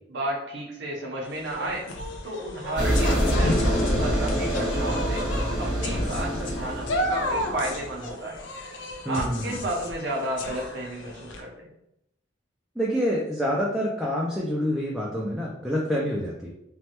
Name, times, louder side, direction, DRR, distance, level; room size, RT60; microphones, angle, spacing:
voice 1, 0.1-1.8 2.2-5.2 5.6-8.4 9.1-11.7, right 1 dB, 65° right, -2 dB, 0.6 m, -32 dB
sound 1, 1.3-11.4, left 1 dB, 80° left, 0.5 m, -32 dB
sound 2, 2.8-8.1, equal, 60° left, 1.5 m, -26 dB
voice 2, 9.1-9.5 12.8-16.5, equal, ahead, -4 dB, 0.3 m, -27 dB
3.1 x 2.2 x 2.8 m, 0.82 s
head